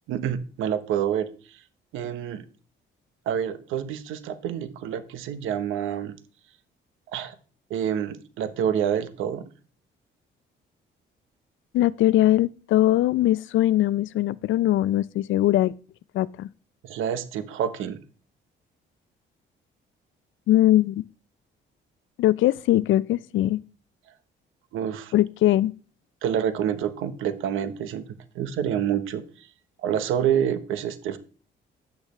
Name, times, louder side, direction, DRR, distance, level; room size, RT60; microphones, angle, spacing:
voice 1, 0.1-1.6 1.9-2.4 3.3-6.1 7.1-7.3 7.7-9.5 16.8-18.0 24.7-25.1 26.2-29.5 29.8-31.2, right 9 dB, 90° right, 1.0 m, -28 dB
voice 2, 11.7-15.7 16.1-16.5 20.5-21.0 22.2-23.6 25.1-25.7, left 14 dB, 75° left, 0.5 m, -21 dB
10.5 x 8.7 x 3.1 m
cardioid pair, 90°, 20 cm